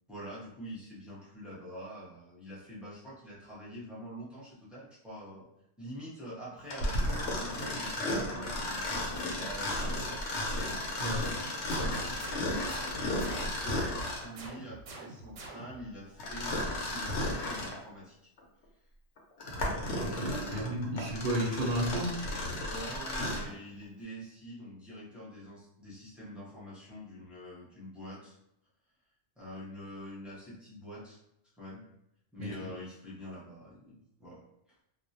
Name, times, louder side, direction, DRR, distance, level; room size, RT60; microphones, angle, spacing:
voice 1, 0.1-5.5 5.8-8.9 9.2-10.3 13.0-18.3 20.4-21.1 22.7-28.4 29.4-31.2 31.6-31.9 32.3-34.4, equal, ahead, -8 dB, 0.4 m, -45 dB
Mechanisms, 6.7-14.4 16.2-17.8 18.4-18.5 19.2-23.5, left 1 dB, 75° left, 0.9 m, -34 dB
sound 1, 11.7-13.8 14.4-15.9, right 2 dB, 90° right, 0.9 m, -47 dB
voice 2, 19.9-22.2 32.4-32.7, right 1 dB, 60° right, 0 dB, 0.6 m, -33 dB
2.3 x 2.0 x 2.6 m, 0.80 s
omnidirectional pair, 1.2 m